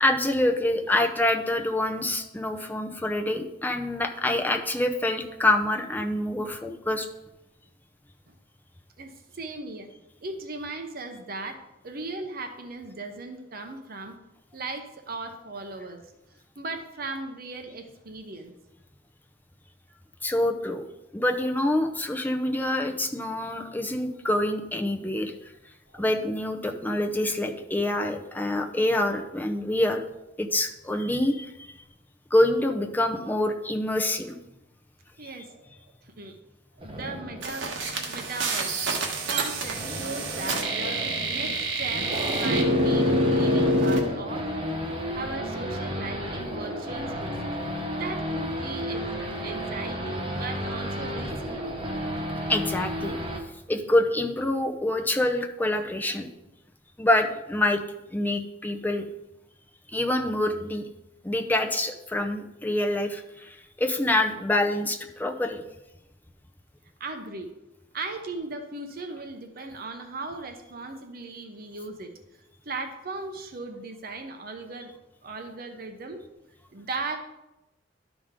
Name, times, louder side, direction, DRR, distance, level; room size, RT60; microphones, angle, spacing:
voice 1, 0.0-7.1 20.2-20.8 21.1-25.3 25.9-30.0 30.4-31.7 32.3-34.4 35.2-35.3 52.5-53.2 53.7-56.3 57.0-57.8 58.1-59.0 59.9-60.8 61.2-65.6, left 1 dB, 10° left, 3 dB, 0.6 m, -26 dB
voice 2, 9.0-9.9 10.2-14.1 14.5-16.0 16.6-18.5 25.9-26.0 35.2-35.6 36.2-36.4 36.8-37.7 38.1-38.8 39.3-41.0 41.3-44.5 45.1-47.5 47.9-51.7 67.0-67.5 67.9-72.1 72.7-74.9 75.2-76.2 76.7-77.2, right 3 dB, 50° right, 5 dB, 0.8 m, -37 dB
Race car auto racing / Idling / Accelerating revving vroom, 36.8-53.4, equal, 30° right, 1.1 m, -33 dB
sound 1, 37.4-44.0, right 1 dB, 75° right, 1.2 m, -26 dB
12.0 x 5.1 x 3.7 m, 0.94 s
head